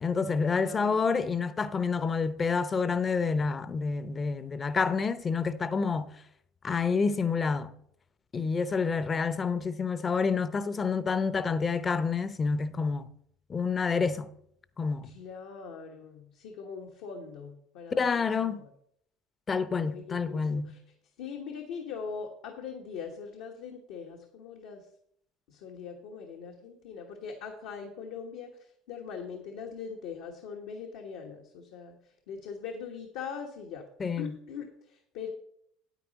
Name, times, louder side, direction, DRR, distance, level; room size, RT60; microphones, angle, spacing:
voice 1, 0.0-6.1 6.6-7.7 8.3-13.1 13.5-14.3 14.8-15.1 18.0-18.6 19.5-20.7 34.0-34.3, left 5 dB, 30° left, 0.7 m, -28 dB
voice 2, 0.6-1.2 15.0-18.7 19.9-20.8 21.2-24.9 25.5-33.8 34.2-35.3, left 6 dB, 75° left, 1.3 m, -41 dB
9.2 x 8.9 x 4.1 m
supercardioid pair, 85°, 0 cm